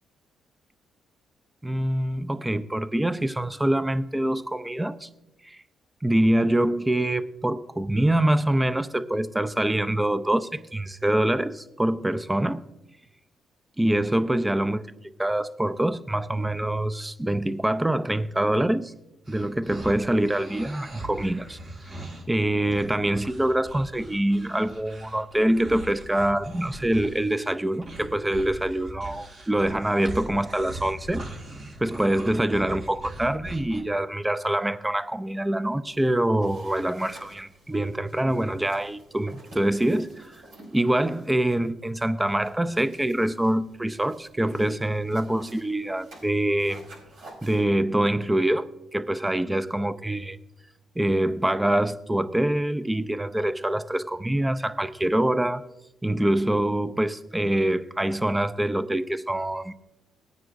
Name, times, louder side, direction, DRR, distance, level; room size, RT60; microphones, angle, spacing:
voice 1, 1.6-5.1 5.4-5.6 6.0-12.6 13.8-18.9 19.3-21.6 22.3-31.2 31.8-40.4 40.7-46.8 47.4-50.4 51.0-55.6 56.0-59.7, right 1 dB, 10° right, 0.5 m, -25 dB
sound 1, 19.3-33.8, right 1 dB, 55° right, 2.9 m, -41 dB
sound 2, 35.8-47.6, right 1 dB, 80° right, 4.5 m, -51 dB
18.5 x 9.5 x 2.6 m
cardioid pair, 90°, 0 cm